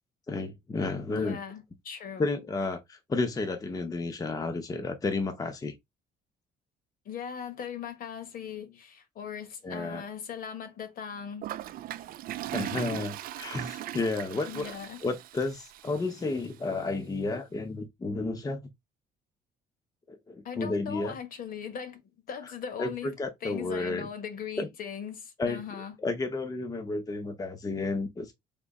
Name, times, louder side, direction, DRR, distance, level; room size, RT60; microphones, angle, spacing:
voice 1, 0.3-1.4 2.2-5.7 9.6-10.0 12.5-14.7 15.0-18.7 20.1-21.2 22.8-24.1 24.6-24.7 25.4-25.6 26.0-28.3, left 3 dB, 20° left, 0.7 m, -32 dB
voice 2, 1.1-2.3 7.0-11.5 14.5-15.0 20.4-22.0 22.3-23.1 23.4-25.9, left 7 dB, 55° left, 1.2 m, -39 dB
Toilet flush, 11.4-16.5, right 13 dB, 60° right, 0.4 m, -39 dB
3.6 x 3.0 x 4.0 m
cardioid pair, 110°, 17 cm